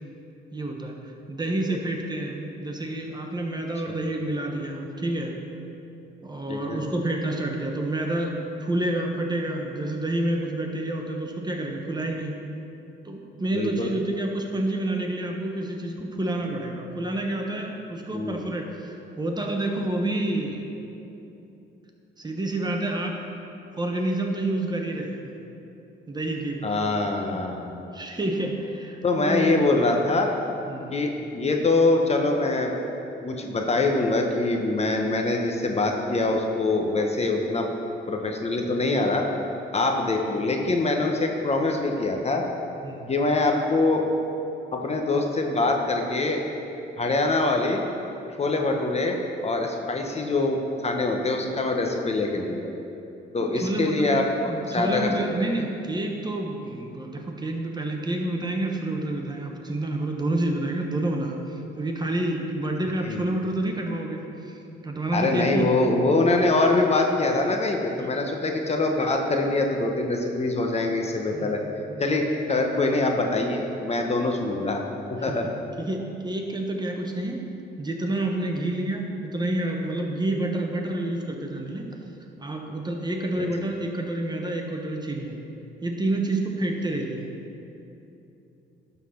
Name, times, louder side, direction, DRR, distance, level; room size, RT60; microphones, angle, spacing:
voice 1, 0.5-1.0 1.3-5.4 6.2-12.4 13.0-20.6 22.2-23.2 23.7-25.3 26.1-26.7 27.3-27.4 27.9-29.5 30.7-30.9 42.8-43.1 48.5-48.6 53.4-54.1 54.4-65.7 68.0-68.2 71.3-72.1 75.2-75.5 75.8-77.4 77.8-81.9 82.4-85.4 85.8-87.3, right 1 dB, 20° right, 2 dB, 1.0 m, -29 dB
voice 2, 6.5-6.8 13.5-13.9 18.1-18.4 26.6-27.7 29.0-30.3 30.9-32.7 33.2-37.7 38.1-39.2 39.7-42.4 43.1-44.0 44.7-46.4 47.0-47.8 48.4-52.7 53.3-55.1 55.4-55.5 63.0-63.2 65.1-71.6 72.0-74.8 75.1-75.5 83.4-83.5, left 2 dB, 30° left, 2 dB, 0.9 m, -24 dB
11.5 x 4.1 x 5.8 m, 2.9 s
cardioid pair, 90°, 20 cm